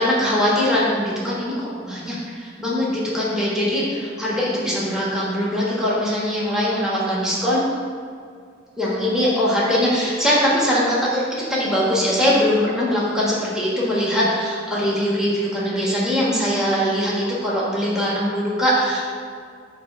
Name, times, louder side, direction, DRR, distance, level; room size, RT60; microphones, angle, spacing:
voice 1, 0.0-7.6 8.8-11.2 11.5-19.0, equal, 5° right, -7 dB, 1.4 m, -21 dB
8.6 x 3.3 x 6.0 m, 2.2 s
head